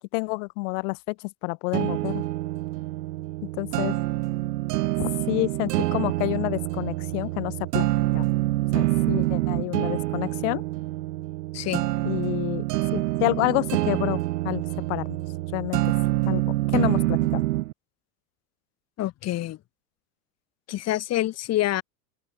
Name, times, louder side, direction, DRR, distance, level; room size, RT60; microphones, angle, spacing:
voice 1, 0.0-2.3 3.6-3.9 5.0-7.9 8.1-8.3 8.7-10.6 12.0-12.6 12.9-14.6 14.9-15.1 15.5-15.9 16.2-17.4, left 32 dB, 50° left, 1.0 m, -28 dB
sound 1, 1.7-17.7, right 17 dB, 75° right, 1.2 m, -26 dB
voice 2, 11.5-11.8 19.0-19.6 20.7-21.8, left 14 dB, 30° left, 2.6 m, -26 dB
open air
supercardioid pair, 135°, 48 cm